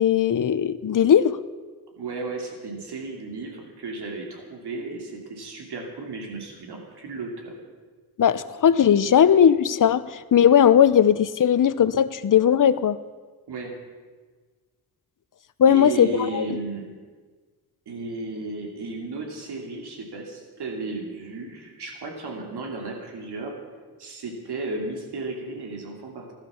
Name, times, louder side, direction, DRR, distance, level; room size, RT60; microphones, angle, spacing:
voice 1, 0.0-1.4 8.2-13.0 15.6-16.5, left 9 dB, 55° left, 14 dB, 0.8 m, -18 dB
voice 2, 2.0-7.5 13.5-13.8 15.7-16.9 17.9-23.5 24.0-26.3, right 3 dB, 90° right, 2 dB, 2.9 m, -34 dB
16.0 x 12.0 x 7.1 m, 1.4 s
cardioid pair, 85°, 38 cm